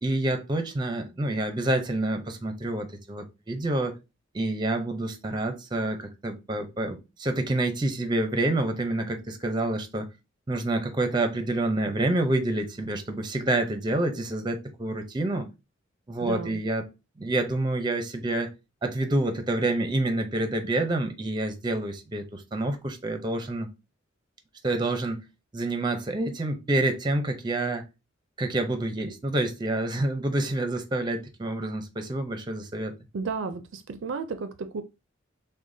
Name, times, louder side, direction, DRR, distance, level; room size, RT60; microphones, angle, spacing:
voice 1, 0.0-4.0 4.3-10.1 10.5-15.5 16.1-16.9 17.2-18.5 18.8-23.7 24.6-25.2 25.5-27.8 28.4-32.9, right 2 dB, 25° right, 0.6 m, -28 dB
voice 2, 16.2-16.6 33.1-34.8, right 4 dB, 70° right, 0.4 m, -33 dB
6.3 x 2.2 x 2.6 m
head